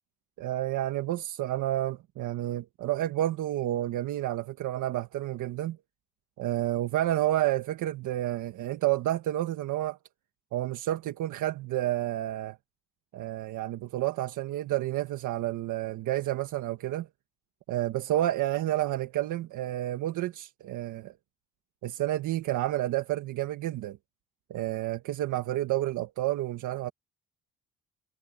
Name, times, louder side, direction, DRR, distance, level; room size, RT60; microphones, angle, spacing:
voice 1, 0.4-5.8 6.4-10.0 10.5-12.6 13.1-17.1 17.7-21.1 21.8-24.0 24.5-26.9, right 14 dB, 85° right, 1.5 m, -30 dB
cardioid pair, 90°, 30 cm